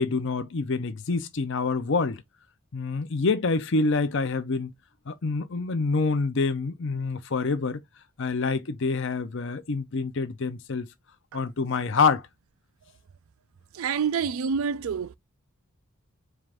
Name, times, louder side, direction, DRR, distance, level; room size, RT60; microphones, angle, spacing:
voice 1, 0.0-2.2 2.7-4.7 5.1-7.8 8.2-10.9 11.3-12.2, left 4 dB, 60° left, 0.6 m, -26 dB
voice 2, 13.7-15.2, right 6 dB, 75° right, 0.4 m, -27 dB
4.5 x 2.5 x 3.5 m
head